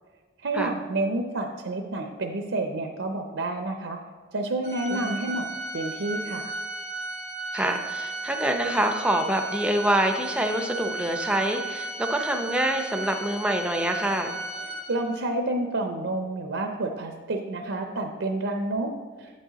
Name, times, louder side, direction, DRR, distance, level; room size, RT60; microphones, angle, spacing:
voice 1, 0.4-4.0 4.3-5.5 5.7-6.5 14.7-18.9 19.2-19.3, right 2 dB, 75° right, 3 dB, 0.6 m, -29 dB
Organ, 4.6-15.3, right 2 dB, 55° left, 2.5 m, -34 dB
voice 2, 7.5-14.3, right 1 dB, 5° right, 5 dB, 0.5 m, -26 dB
8.8 x 6.3 x 4.0 m, 1.4 s
head